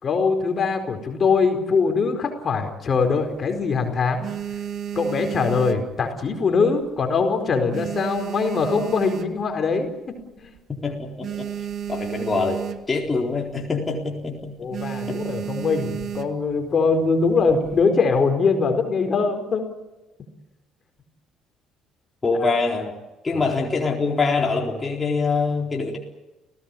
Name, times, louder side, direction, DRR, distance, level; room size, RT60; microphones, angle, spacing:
voice 1, 0.0-4.2 4.9-9.9 10.4-10.5 14.6-19.7 22.4-22.5 23.3-23.4, left 4 dB, 45° left, 5 dB, 4.6 m, -22 dB
sound 1, 2.9-3.6 4.0-6.5 6.8-7.2 7.5-9.7 10.2-10.3 10.5-10.6 10.9-13.1 13.4-13.7 14.0-14.3 14.7-16.5 17.3-17.8, right 9 dB, 55° right, 1.8 m, -32 dB
voice 2, 10.8-12.6 12.9-14.6 15.1-15.2 22.2-22.9 23.2-26.0, left 4 dB, 30° left, 0 dB, 4.1 m, -24 dB
30.0 x 17.0 x 8.6 m, 1.1 s
hypercardioid pair, 55°, 0 cm